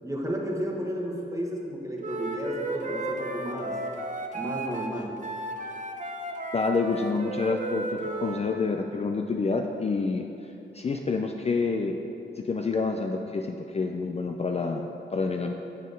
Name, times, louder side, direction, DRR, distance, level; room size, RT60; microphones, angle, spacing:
voice 1, 0.0-3.8 4.3-5.2, equal, 15° right, -1 dB, 1.1 m, -32 dB
Wind instrument woodwind instrument, 2.0-8.4, right 2 dB, 40° right, 0.7 m, -34 dB
voice 2, 6.5-12.0 12.4-14.9 15.1-15.5, left 4 dB, 30° left, 3 dB, 0.4 m, -28 dB
7.4 x 4.1 x 5.1 m, 2.9 s
cardioid pair, 65°, 20 cm